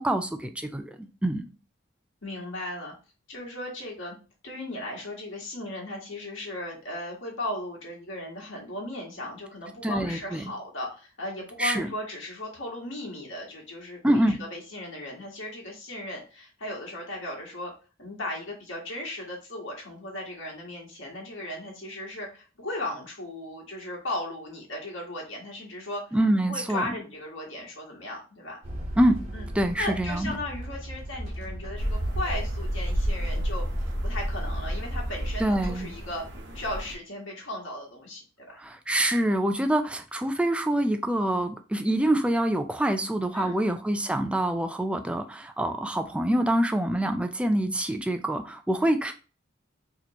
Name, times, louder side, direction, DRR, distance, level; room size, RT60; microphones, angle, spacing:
voice 1, 0.0-1.5 9.8-10.4 11.6-11.9 14.0-14.4 26.1-26.9 29.0-29.2 29.6-30.3 35.4-35.9 38.6-49.1, right 1 dB, 5° right, 6 dB, 0.3 m, -25 dB
voice 2, 2.2-2.9 3.3-4.1 4.4-17.7 18.0-26.2 26.4-28.6 29.3-29.5 29.8-33.6 34.0-36.2 36.5-38.6 43.3-43.8, left 1 dB, 75° left, -2 dB, 1.5 m, -36 dB
sound 1, 28.6-35.4, equal, 30° right, 1.1 m, -34 dB
sound 2, 31.8-36.9, equal, 60° right, 1.0 m, -33 dB
4.2 x 3.0 x 2.9 m, 0.35 s
head